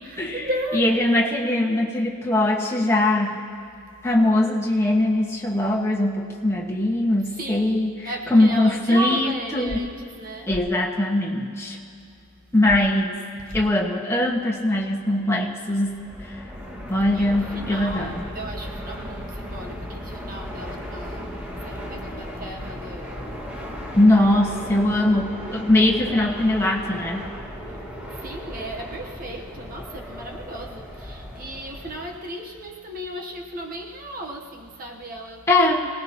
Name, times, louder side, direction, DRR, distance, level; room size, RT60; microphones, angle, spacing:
voice 1, 0.0-1.0 3.9-4.2 7.3-10.6 12.5-12.7 13.4-13.7 16.7-24.1 25.8-26.3 27.6-35.6, right 1 dB, 40° right, 1 dB, 1.1 m, -36 dB
voice 2, 0.7-3.4 4.0-9.8 10.5-11.8 12.5-13.2 13.5-16.0 16.9-18.2 23.9-27.3 35.5-35.9, left 1 dB, 10° left, -3 dB, 1.5 m, -21 dB
sound 1, 9.7-9.8 10.5-10.6 12.7-12.8 13.5-13.6, equal, 30° left, 2.6 m, -34 dB
Fixed-wing aircraft airplane, 15.9-32.2, equal, 5° right, 1.9 m, -36 dB
25.0 x 18.5 x 3.0 m, 2.4 s
head